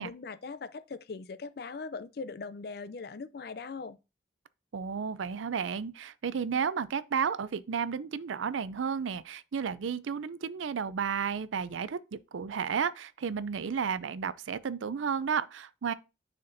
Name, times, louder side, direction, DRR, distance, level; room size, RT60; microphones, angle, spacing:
voice 1, 0.0-4.0, left 4 dB, 55° left, 0.4 m, -40 dB
voice 2, 4.7-15.9, right 6 dB, 85° right, 0.4 m, -32 dB
9.6 x 4.3 x 2.6 m
head